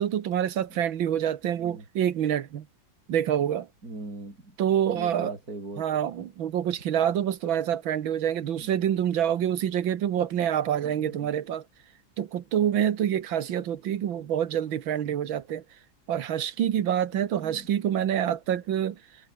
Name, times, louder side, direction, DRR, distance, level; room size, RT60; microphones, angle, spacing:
voice 1, 0.0-2.7 3.1-3.7 4.6-5.3 5.8-11.6 12.2-15.6 16.1-19.0, right 10 dB, 75° right, 2.0 m, -26 dB
voice 2, 3.8-4.5 4.9-6.0 8.6-8.9 10.8-11.3 17.3-17.7, right 2 dB, 45° right, 6.5 m, -41 dB
omnidirectional pair, 2.2 m